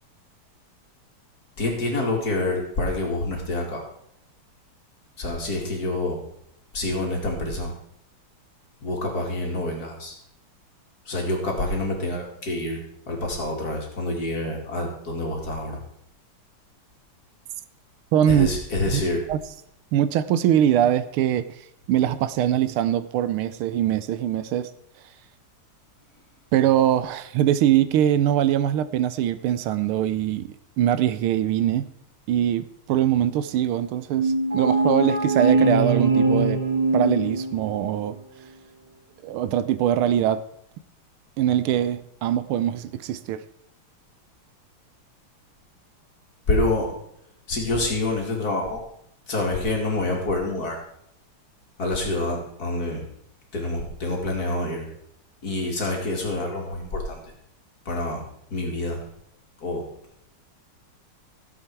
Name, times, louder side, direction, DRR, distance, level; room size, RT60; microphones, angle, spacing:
voice 1, 1.6-3.8 5.2-6.2 6.7-7.7 8.8-10.1 11.1-12.8 13.1-15.8 18.3-19.2 46.5-46.9 47.5-48.8 49.3-50.8 51.8-53.0 53.5-54.9 55.4-57.2 57.9-58.2 58.5-59.0 59.6-59.8, left 2 dB, 45° left, 2.7 m, -27 dB
voice 2, 18.1-18.5 18.9-19.0 19.3-19.4 19.9-21.4 21.9-24.7 26.5-31.9 32.3-36.6 36.9-38.2 39.2-40.4 41.4-43.4, right 11 dB, 80° right, 1.5 m, -22 dB
sound 1, 34.1-37.9, right 3 dB, 30° right, 1.7 m, -22 dB
15.0 x 7.8 x 4.6 m
omnidirectional pair, 2.4 m